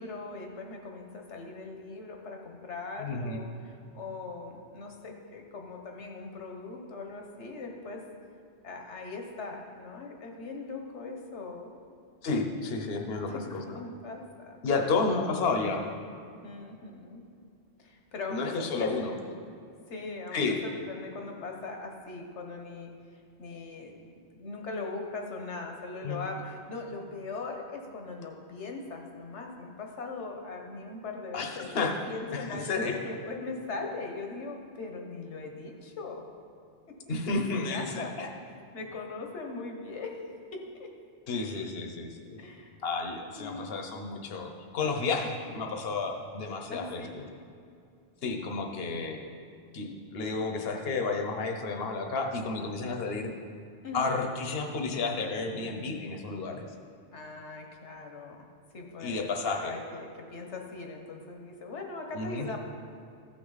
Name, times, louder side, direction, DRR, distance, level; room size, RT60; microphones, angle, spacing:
voice 1, 0.0-8.1 8.6-11.7 12.9-15.1 16.4-17.2 17.8-19.2 19.9-36.2 36.9-37.0 37.3-38.1 38.7-40.2 40.5-40.9 42.4-42.7 43.1-43.8 46.7-47.2 53.8-54.1 57.1-58.5 58.7-59.2 59.6-62.6, left 3 dB, 75° left, 2 dB, 1.4 m, -40 dB
voice 2, 3.0-3.4 12.2-13.6 14.6-15.9 18.3-19.1 20.3-20.6 26.0-26.2 31.3-32.0 32.3-33.0 37.1-38.3 41.3-42.4 42.8-47.2 48.2-49.2 49.7-53.3 53.9-56.6 59.0-59.7 62.1-62.5, left 3 dB, 60° left, 3 dB, 1.1 m, -31 dB
15.0 x 6.2 x 4.0 m, 2.4 s
omnidirectional pair, 1.2 m